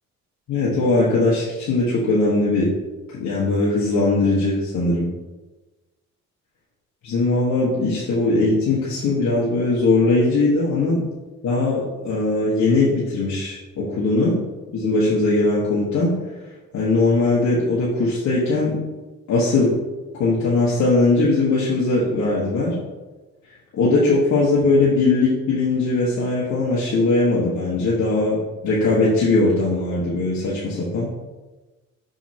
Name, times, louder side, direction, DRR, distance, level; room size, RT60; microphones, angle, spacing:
voice 1, 0.5-2.7 3.1-5.1 7.0-11.1 11.4-14.4 14.7-16.2 16.7-18.8 19.3-19.8 20.2-22.8 23.7-31.1, left 2 dB, 65° left, -7 dB, 1.4 m, -20 dB
5.8 x 5.5 x 2.9 m, 1.2 s
cardioid pair, 90°, 30 cm